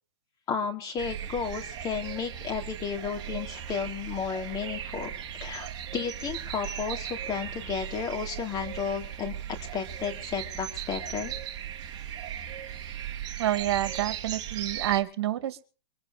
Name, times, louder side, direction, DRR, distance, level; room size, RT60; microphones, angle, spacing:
voice 1, 0.5-5.1 5.4-9.3 9.7-11.3, left 6 dB, 25° left, 5 dB, 3.3 m, -33 dB
sound 1, 1.0-15.0, right 9 dB, 30° right, 2.7 m, -37 dB
voice 2, 13.4-15.6, right 13 dB, 65° right, 11 dB, 2.3 m, -28 dB
24.5 x 8.9 x 5.1 m, 0.38 s
hypercardioid pair, 140°, 15 cm